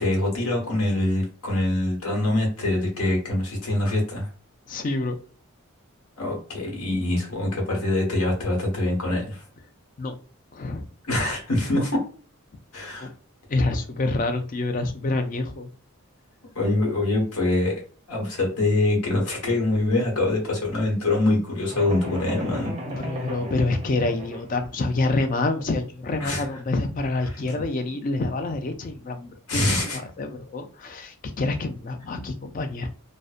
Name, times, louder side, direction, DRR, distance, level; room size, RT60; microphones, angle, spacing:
voice 1, 0.0-4.3 6.2-9.4 11.1-12.0 12.7-13.1 16.5-22.7 26.2-26.4 29.5-30.0, left 2 dB, 85° left, -1 dB, 1.2 m, -24 dB
voice 2, 4.7-5.2 10.0-10.2 10.5-10.9 13.0-13.1 13.5-15.7 22.9-29.6 29.9-32.9, left 2 dB, 35° left, 6 dB, 0.3 m, -27 dB
sound 1, 21.7-24.6, right 1 dB, 25° right, 0.5 m, -36 dB
2.6 x 2.1 x 2.3 m, 0.41 s
head